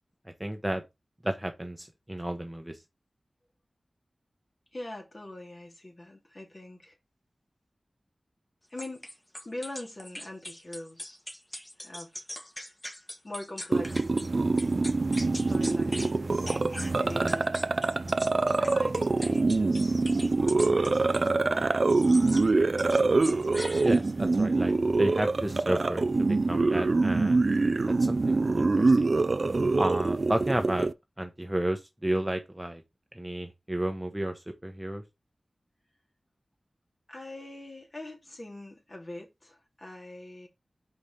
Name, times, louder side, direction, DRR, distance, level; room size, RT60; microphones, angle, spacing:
voice 1, 0.4-0.8 1.2-2.8 23.8-26.0 26.3-27.6 27.9-28.9 29.8-30.9 31.2-32.8 33.1-35.0, right 1 dB, 10° right, 1.0 m, -32 dB
voice 2, 4.7-7.0 8.7-9.1 9.4-11.2 11.8-12.2 13.2-14.1 15.3-16.5 16.9-17.6 18.6-20.0 20.3-21.1 21.5-22.0 37.1-40.5, left 1 dB, 40° left, 2.7 m, -42 dB
sound 1, 8.8-14.3 14.6-16.1 16.4-21.3 21.9-22.5 22.8-24.3, left 1 dB, 20° left, 1.8 m, -41 dB
sound 2, 13.7-30.9, right 3 dB, 55° right, 0.4 m, -25 dB
5.1 x 5.0 x 5.7 m
wide cardioid pair, 90°, 0 cm